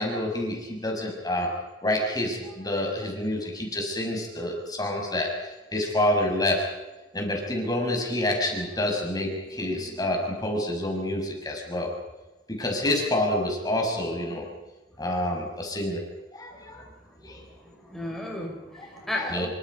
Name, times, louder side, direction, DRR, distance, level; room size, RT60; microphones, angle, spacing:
voice 1, 0.0-1.6 1.8-6.6 7.1-11.9 12.5-14.4 15.0-16.0 16.3-16.8 17.2-17.4 18.7-18.9 19.3-19.5, left 1 dB, 20° left, 1 dB, 6.0 m, -28 dB
voice 2, 16.5-16.9 17.2-19.5, left 1 dB, ahead, -2 dB, 5.5 m, -35 dB
27.5 x 25.0 x 5.3 m, 1.1 s
head